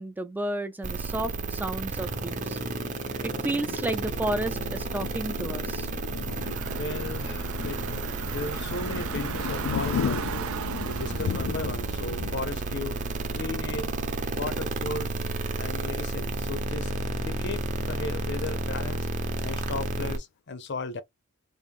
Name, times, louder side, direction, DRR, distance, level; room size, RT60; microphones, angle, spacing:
voice 1, 0.0-2.6 3.2-5.9, right 1 dB, 10° right, 0.3 m, -32 dB
sound 1, 0.8-20.2, right 2 dB, 40° right, 0.7 m, -32 dB
Thunder, 1.9-16.3 16.8-16.9 17.2-17.8, left 7 dB, 85° left, 0.3 m, -37 dB
Car / Engine, 6.4-14.6, right 7 dB, 90° right, 0.4 m, -39 dB
voice 2, 6.7-7.8 8.3-10.5 10.9-13.0 13.3-13.9 14.3-15.1 15.6-16.9 17.2-19.1 19.4-21.0, left 3 dB, 55° left, 0.6 m, -36 dB
3.6 x 2.5 x 3.5 m
head